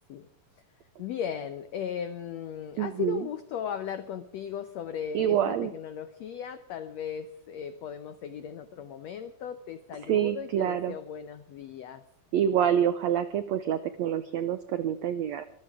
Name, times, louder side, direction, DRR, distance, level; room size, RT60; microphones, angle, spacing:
voice 1, 1.0-12.0, left 8 dB, 85° left, 10 dB, 1.5 m, -37 dB
voice 2, 2.8-3.2 5.1-5.7 10.1-10.9 12.3-15.4, right 9 dB, 90° right, 11 dB, 1.5 m, -27 dB
24.0 x 15.5 x 3.7 m, 0.65 s
omnidirectional pair, 4.2 m